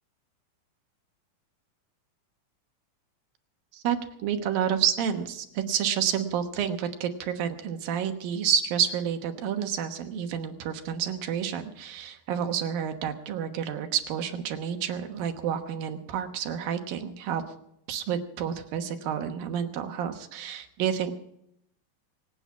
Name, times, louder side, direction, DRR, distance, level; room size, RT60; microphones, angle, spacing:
voice 1, 3.7-17.4 17.9-21.1, right 8 dB, 80° right, 6 dB, 2.9 m, -29 dB
23.5 x 9.0 x 6.0 m, 0.75 s
omnidirectional pair, 4.1 m